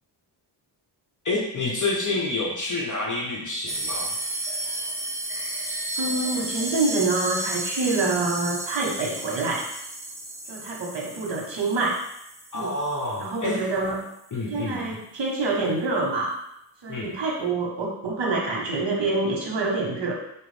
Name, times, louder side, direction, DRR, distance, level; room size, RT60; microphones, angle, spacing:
voice 1, 1.2-4.1 12.5-13.6 14.3-14.8 16.9-17.1, left 2 dB, 45° left, -2 dB, 0.8 m, -28 dB
sound 1, 3.7-13.5, right 1 dB, 5° right, 0.6 m, -33 dB
voice 2, 6.0-9.6 10.5-12.0 12.5-12.8 13.2-14.0 14.5-16.3 16.8-20.1, right 3 dB, 75° right, -2 dB, 1.2 m, -26 dB
4.5 x 2.5 x 3.3 m, 0.80 s
cardioid pair, 75°, 44 cm